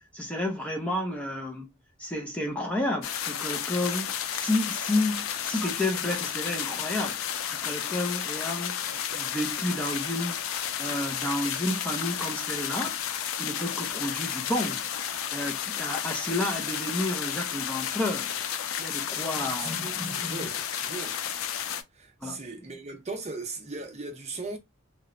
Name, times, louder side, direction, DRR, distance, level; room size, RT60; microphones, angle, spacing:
voice 1, 0.1-1.7 2.0-7.2 7.5-10.5 10.8-13.0 13.4-14.9 15.3-18.3 18.8-20.5 22.2-22.4, left 1 dB, 5° left, 0.4 m, -31 dB
sound 1, 3.0-21.8, left 9 dB, 80° left, 0.4 m, -32 dB
voice 2, 19.6-21.2 22.0-24.6, right 3 dB, 35° right, 0.6 m, -38 dB
2.8 x 2.1 x 2.4 m
head